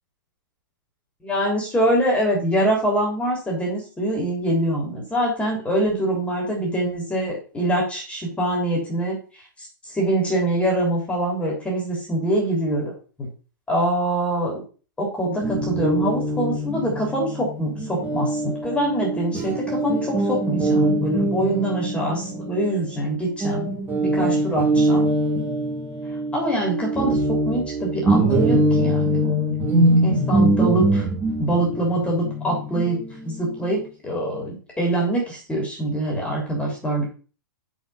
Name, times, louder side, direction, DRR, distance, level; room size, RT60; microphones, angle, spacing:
voice 1, 1.2-9.2 9.6-12.9 13.2-13.3 13.7-14.6 15.0-25.1 26.3-29.3 30.0-31.1 31.4-33.0 33.2-37.1, right 1 dB, 10° left, -2 dB, 3.3 m, -24 dB
Guitar, 15.4-23.1 23.4-33.8, right 1 dB, 20° right, 2.6 m, -23 dB
5.9 x 5.4 x 5.7 m, 0.37 s
hypercardioid pair, 115°, 11 cm